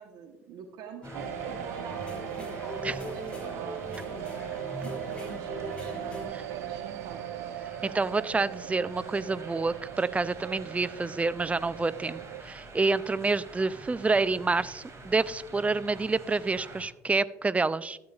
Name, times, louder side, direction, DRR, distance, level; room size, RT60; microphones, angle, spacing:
voice 1, 0.0-3.8 4.1-4.4 4.8-7.4, right 6 dB, 65° right, 5 dB, 1.1 m, -46 dB
sound 1, 1.0-6.3, left 1 dB, 15° left, 2.2 m, -40 dB
sound 2, 1.0-16.8, right 3 dB, 40° right, 2.5 m, -47 dB
sound 3, 1.1-12.4, right 13 dB, 80° right, 0.4 m, -39 dB
voice 2, 7.8-18.0, right 3 dB, 15° right, 18 dB, 0.4 m, -28 dB
12.5 x 8.6 x 2.4 m, 0.93 s
hypercardioid pair, 60°, 8 cm